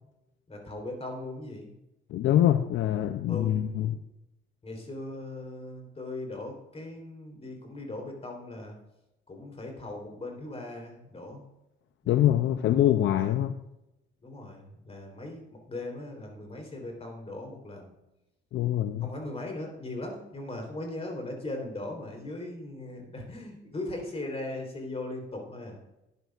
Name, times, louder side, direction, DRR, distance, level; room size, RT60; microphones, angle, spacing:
voice 1, 0.5-1.7 3.3-3.9 4.6-8.8 9.3-11.4 12.0-12.8 13.2-13.4 14.2-17.9 19.0-25.8, left 2 dB, 30° left, 2 dB, 3.5 m, -39 dB
voice 2, 2.1-4.0 12.1-13.5 18.5-19.1, left 12 dB, 70° left, 10 dB, 0.5 m, -24 dB
11.5 x 10.5 x 2.4 m, 0.92 s
cardioid pair, 90°, 20 cm